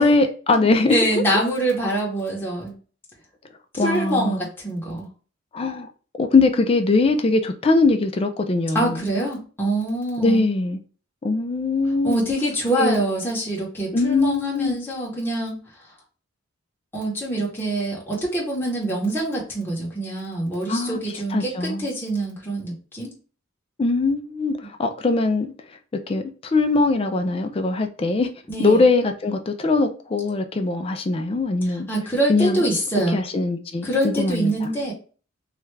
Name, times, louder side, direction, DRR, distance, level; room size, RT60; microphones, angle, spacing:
voice 1, 0.0-1.2 3.8-4.5 5.5-5.9 6.2-9.0 10.2-10.8 11.2-12.2 12.8-13.0 13.9-14.8 20.7-21.0 21.3-21.9 23.8-25.5 26.1-28.3 28.6-31.9 32.3-32.6 33.1-34.7, left 3 dB, 30° left, 0.4 m, -21 dB
voice 2, 0.9-2.7 3.8-5.1 8.7-10.4 12.0-15.6 16.9-23.2 28.5-28.8 31.6-33.2 33.8-34.9, right 1 dB, 10° left, 0.9 m, -25 dB
3.2 x 2.4 x 3.2 m
head